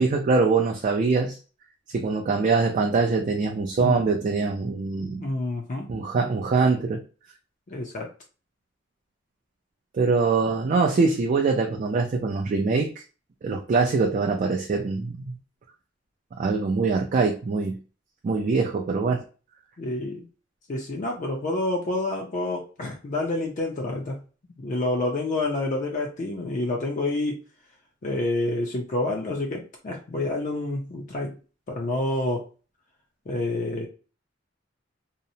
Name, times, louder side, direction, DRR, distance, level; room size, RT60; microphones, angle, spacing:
voice 1, 0.0-1.4 1.9-5.3 5.9-7.0 9.9-13.0 13.4-15.4 16.4-17.8 18.2-19.2, right 4 dB, 40° right, 2 dB, 0.3 m, -23 dB
voice 2, 5.2-5.9 6.1-6.2 7.7-8.1 19.8-20.2 20.7-24.2 24.6-27.4 28.0-31.4 31.7-32.5 33.3-33.9, left 2 dB, 40° left, 0 dB, 0.4 m, -28 dB
2.8 x 2.0 x 2.6 m, 0.35 s
head